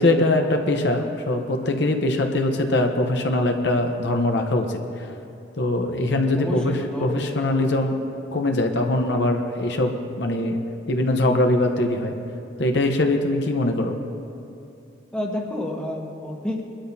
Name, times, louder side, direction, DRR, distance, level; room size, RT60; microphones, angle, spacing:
voice 1, 0.0-4.8 5.6-7.9 8.3-10.6 10.9-12.1 12.6-14.0, left 1 dB, 65° left, 4 dB, 0.9 m, -22 dB
voice 2, 6.4-7.4 15.1-16.6, left 1 dB, 5° left, -1 dB, 1.2 m, -29 dB
22.0 x 13.0 x 2.8 m, 2.7 s
head